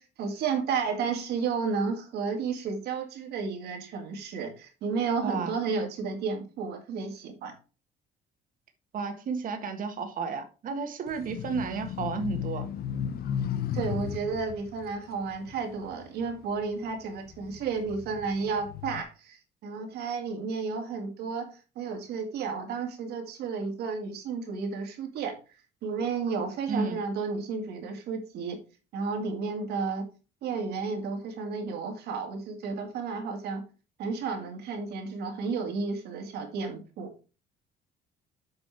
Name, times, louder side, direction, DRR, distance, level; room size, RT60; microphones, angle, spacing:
voice 1, 0.0-7.5 13.7-25.3 25.8-28.6 28.9-30.1 30.4-33.6 34.0-37.1, right 5 dB, 75° right, 2.3 m, -32 dB
voice 2, 5.2-5.5 8.9-12.7 26.7-27.0, right 5 dB, 55° right, 1.6 m, -32 dB
sound 1, 11.1-16.6 17.2-19.0, left 9 dB, 65° left, 0.8 m, -35 dB
7.8 x 5.2 x 4.6 m
cardioid pair, 110°, 17 cm